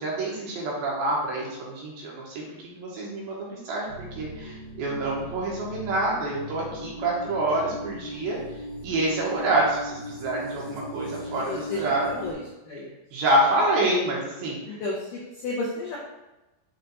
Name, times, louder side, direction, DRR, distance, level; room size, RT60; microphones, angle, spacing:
voice 1, 0.0-8.4 8.8-12.1 13.1-14.8, right 1 dB, 70° right, -4 dB, 2.6 m, -27 dB
sound 1, 3.9-12.3, equal, 55° left, 0.6 m, -38 dB
voice 2, 11.5-12.9 14.7-16.0, left 2 dB, 90° left, -4 dB, 1.9 m, -32 dB
7.3 x 3.2 x 4.0 m, 1.0 s
omnidirectional pair, 5.1 m